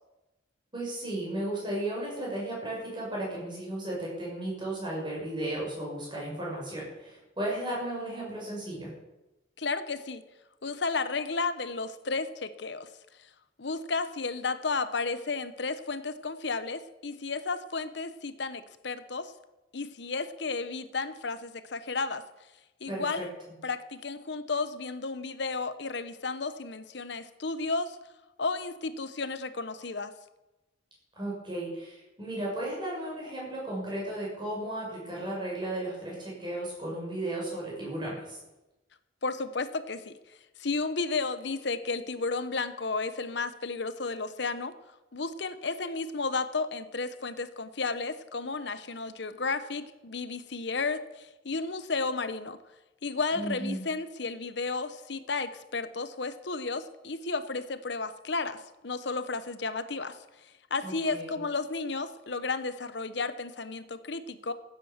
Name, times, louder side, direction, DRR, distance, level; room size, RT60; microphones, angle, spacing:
voice 1, 0.7-8.9 22.9-23.3 31.2-38.4 53.3-53.8 60.8-61.4, right 1 dB, 25° right, -4 dB, 6.6 m, -35 dB
voice 2, 9.6-10.2 10.6-12.9 13.6-19.3 19.7-22.2 22.8-23.3 23.6-28.0 28.4-30.1 39.2-40.1 40.6-44.7 45.1-52.6 53.0-64.5, left 4 dB, 65° left, 12 dB, 0.9 m, -33 dB
14.5 x 9.1 x 7.3 m, 1.0 s
head